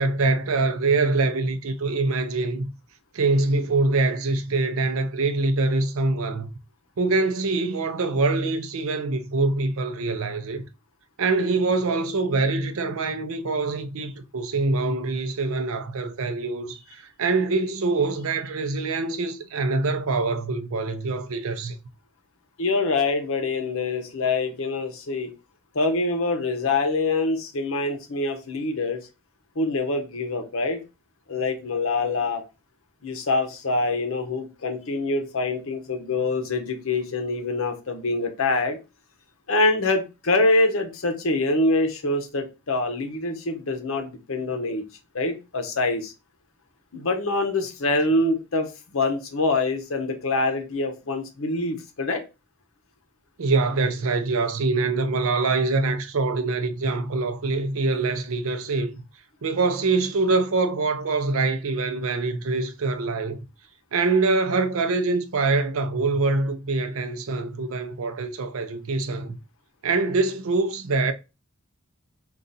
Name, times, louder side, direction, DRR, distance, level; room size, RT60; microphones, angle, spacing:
voice 1, 0.0-2.7 3.1-6.5 7.0-10.6 11.2-21.8 53.4-58.9 59.4-63.4 63.9-69.4 69.8-71.1, right 3 dB, 65° right, 0.5 m, -24 dB
voice 2, 22.6-25.3 25.7-29.0 29.6-30.8 31.3-32.4 33.0-38.8 39.5-44.8 45.1-46.1 46.9-52.2, left 2 dB, 65° left, 0.8 m, -25 dB
3.8 x 2.4 x 4.0 m
head